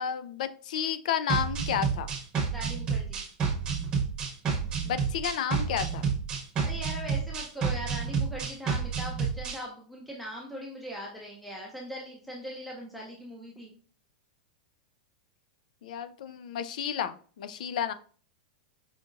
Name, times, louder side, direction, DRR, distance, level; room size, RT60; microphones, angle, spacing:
voice 1, 0.0-2.1 4.8-6.1 15.8-17.9, left 8 dB, 65° left, 13 dB, 0.3 m, -31 dB
sound 1, 1.3-9.6, right 5 dB, 20° right, 0.8 m, -30 dB
voice 2, 2.5-3.2 6.6-13.7, equal, ahead, -3 dB, 0.5 m, -40 dB
4.9 x 2.7 x 2.5 m, 0.44 s
supercardioid pair, 165°, 4 cm